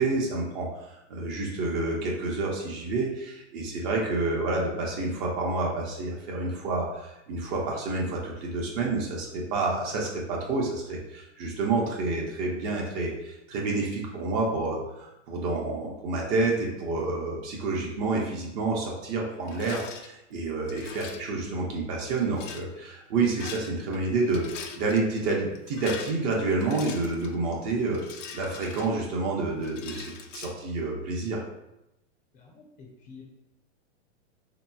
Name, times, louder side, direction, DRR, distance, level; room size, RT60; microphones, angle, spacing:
voice 1, 0.0-28.0 28.3-31.4, right 3 dB, 35° right, -2 dB, 0.6 m, -29 dB
Rattle, 19.5-20.1 20.7-21.3 22.2-22.7 23.3-24.0 24.2-25.0 25.6-27.4 27.9-29.2 29.6-30.5, left 7 dB, 80° left, 0.5 m, -42 dB
voice 2, 32.3-33.2, left 4 dB, 25° left, -3 dB, 0.5 m, -49 dB
3.4 x 2.9 x 2.2 m, 0.89 s
hypercardioid pair, 135°, 37 cm